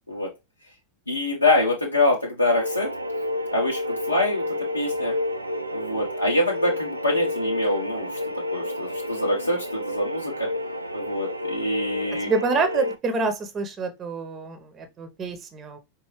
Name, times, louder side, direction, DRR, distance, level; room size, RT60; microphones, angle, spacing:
voice 1, 1.1-2.9 3.5-4.5 4.7-5.1 5.7-8.2 8.5-10.5 10.9-12.3, left 1 dB, 85° left, 1.1 m, -25 dB
sound 1, 2.5-13.0, left 1 dB, 85° right, 0.5 m, -30 dB
voice 2, 12.3-15.8, right 4 dB, 25° right, 1.0 m, -27 dB
5.2 x 2.8 x 3.2 m
figure-of-eight pair, 90°, 0 cm